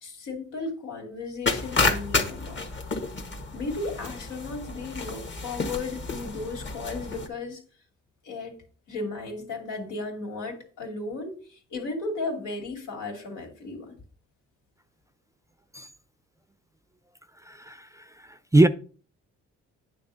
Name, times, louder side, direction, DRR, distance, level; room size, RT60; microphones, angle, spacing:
voice 1, 0.0-2.7 3.5-7.6 8.2-8.6 8.9-14.0, left 3 dB, 80° left, 2.7 m, -35 dB
sound 1, 1.5-7.3, left 3 dB, 40° left, 1.5 m, -30 dB
voice 2, 17.4-18.7, right 2 dB, 10° right, 0.5 m, -23 dB
9.3 x 3.7 x 6.8 m
cardioid pair, 90°, 30 cm